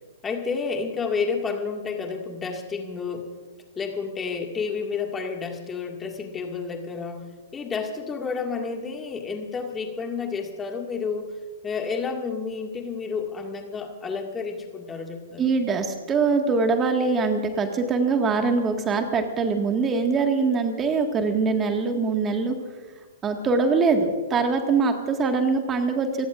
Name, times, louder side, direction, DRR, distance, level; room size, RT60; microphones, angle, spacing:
voice 1, 0.2-3.3 3.8-7.3 7.5-11.3 11.6-15.5, left 5 dB, 15° left, 3 dB, 2.0 m, -30 dB
voice 2, 15.4-22.6 23.2-26.3, right 4 dB, 20° right, 4 dB, 1.8 m, -23 dB
29.5 x 16.5 x 2.5 m, 1.5 s
figure-of-eight pair, 115°, 0 cm